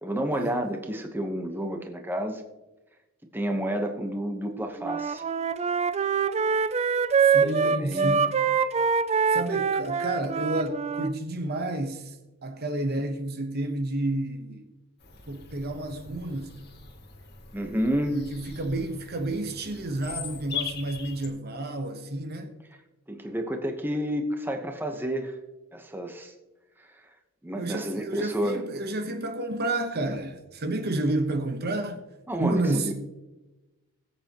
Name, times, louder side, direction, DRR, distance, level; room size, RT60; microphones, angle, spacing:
voice 1, 0.0-2.4 3.3-5.2 7.3-8.2 17.5-18.2 23.1-25.4 25.7-26.3 27.4-28.6 32.3-32.9, equal, 10° right, 1.0 m, -30 dB
Wind instrument woodwind instrument, 4.8-11.1, right 6 dB, 30° right, 0.4 m, -24 dB
voice 2, 7.2-8.3 9.3-12.2 12.4-14.7 15.3-16.6 18.1-22.5 27.5-32.0 32.4-32.9, right 2 dB, 45° right, 1.0 m, -30 dB
Bird vocalization bird call bird song, 15.0-21.3, left 7 dB, 50° left, 1.8 m, -41 dB
20.5 x 8.2 x 3.0 m
head